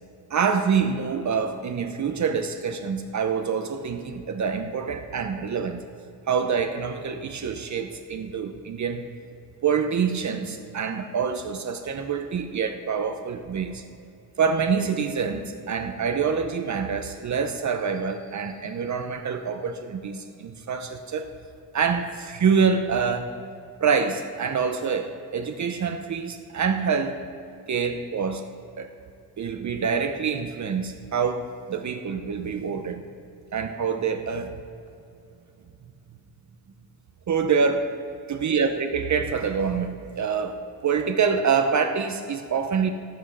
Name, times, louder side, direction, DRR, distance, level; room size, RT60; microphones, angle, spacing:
voice 1, 0.3-5.8 6.3-9.1 9.6-13.8 14.4-21.3 21.7-23.4 23.8-27.2 27.7-28.5 28.8-28.9 29.4-33.1 33.5-34.6 37.3-37.9 38.3-42.9, right 6 dB, 50° right, 6 dB, 0.7 m, -26 dB
16.5 x 6.1 x 6.2 m, 2.7 s
wide cardioid pair, 135°, 38 cm